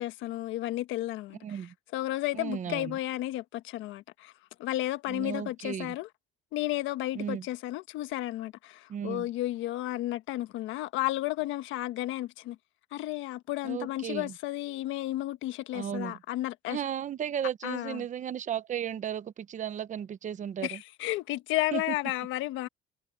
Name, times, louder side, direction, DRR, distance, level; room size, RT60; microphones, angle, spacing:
voice 1, 0.0-1.6 1.9-4.3 4.6-6.1 6.5-12.6 12.9-16.8 17.6-18.0 20.6-22.7, left 16 dB, 75° left, 1.4 m, -33 dB
voice 2, 1.4-1.7 2.3-3.0 5.1-5.9 7.1-7.4 8.9-9.3 13.6-14.3 15.7-16.2 16.7-20.8 21.7-21.8, right 9 dB, 40° right, 1.0 m, -35 dB
cardioid pair, 140°, 20 cm